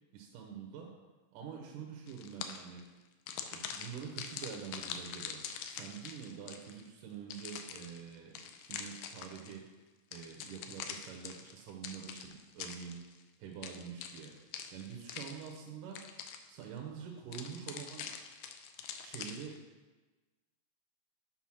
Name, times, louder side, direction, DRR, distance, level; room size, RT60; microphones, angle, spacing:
voice 1, 0.1-1.0 1.3-2.8 3.5-9.7 10.1-13.1 13.4-14.3 14.7-16.1 16.5-18.1 19.0-19.6, right 7 dB, 80° right, 1 dB, 2.1 m, -46 dB
sound 1, 2.1-2.8 3.3-6.8 7.3-9.6 10.1-13.2 13.6-15.7 16.0-16.7 17.3-19.6, left 8 dB, 80° left, 1.9 m, -44 dB
7.5 x 3.9 x 5.9 m, 1.2 s
omnidirectional pair, 4.0 m